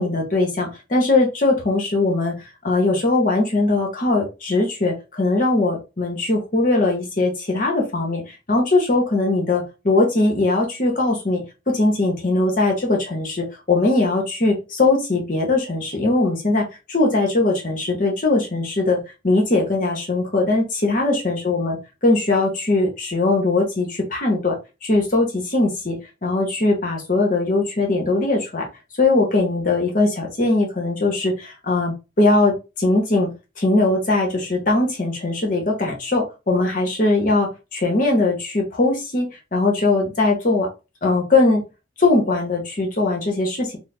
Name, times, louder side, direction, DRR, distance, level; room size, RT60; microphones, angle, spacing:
voice 1, 0.0-2.4 2.6-8.2 8.5-19.0 19.2-21.8 22.0-24.6 24.8-28.7 29.0-33.3 33.6-40.7 41.0-41.6 42.0-43.8, left 2 dB, 45° left, 1 dB, 1.0 m, -20 dB
4.1 x 2.1 x 3.8 m, 0.28 s
head